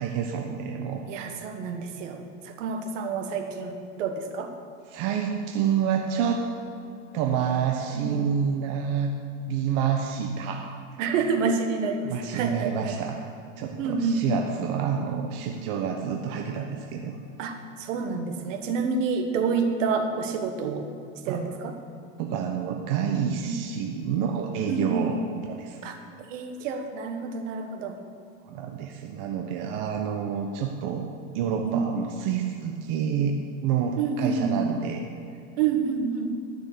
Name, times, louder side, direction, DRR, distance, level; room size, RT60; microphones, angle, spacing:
voice 1, 0.0-1.0 4.9-6.4 7.1-9.1 9.5-10.7 12.0-13.2 13.6-17.2 21.3-21.4 22.2-25.2 25.5-25.8 28.4-31.0 31.3-35.1, right 7 dB, 50° right, 2 dB, 1.1 m, -28 dB
voice 2, 1.1-4.5 7.9-8.2 11.0-13.0 13.8-14.4 17.4-20.9 21.2-21.7 23.4-23.6 24.7-25.1 25.8-28.0 31.6-31.9 34.0-34.7 35.6-36.3, right 5 dB, 70° right, 5 dB, 1.5 m, -28 dB
12.0 x 6.6 x 6.8 m, 2.5 s
supercardioid pair, 125°, 40 cm